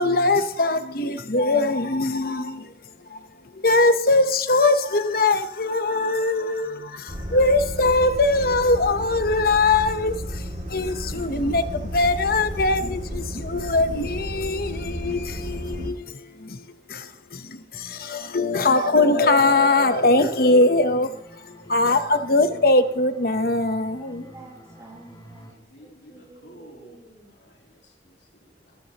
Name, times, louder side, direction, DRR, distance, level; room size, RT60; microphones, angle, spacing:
voice 1, 0.0-2.7 3.1-3.2 3.6-10.4 10.7-16.6 16.9-21.1 21.4-24.2, left 2 dB, 55° left, 1.0 m, -21 dB
sound 1, 7.1-15.9, equal, 45° right, 2.5 m, -33 dB
sound 2, 19.9-25.5, equal, 25° left, 3.8 m, -47 dB
voice 2, 23.7-27.3, right 2 dB, 20° right, 6.8 m, -49 dB
voice 3, 25.3-27.0 27.3-28.8, right 1 dB, 85° left, 3.2 m, -51 dB
21.0 x 14.0 x 3.0 m
head